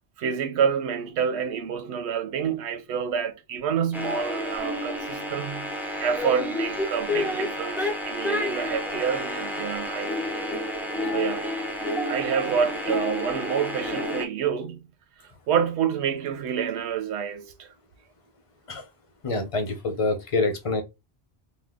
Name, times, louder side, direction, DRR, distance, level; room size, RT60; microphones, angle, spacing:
voice 1, 0.2-5.7 6.0-10.1 11.1-11.5 12.1-14.9 15.2-17.7, right 7 dB, 85° right, 0.9 m, -28 dB
sound 1, 3.9-14.3, left 1 dB, 5° right, 0.4 m, -30 dB
voice 2, 19.2-20.8, left 3 dB, 40° left, 0.6 m, -26 dB
2.7 x 2.1 x 3.4 m
omnidirectional pair, 1.1 m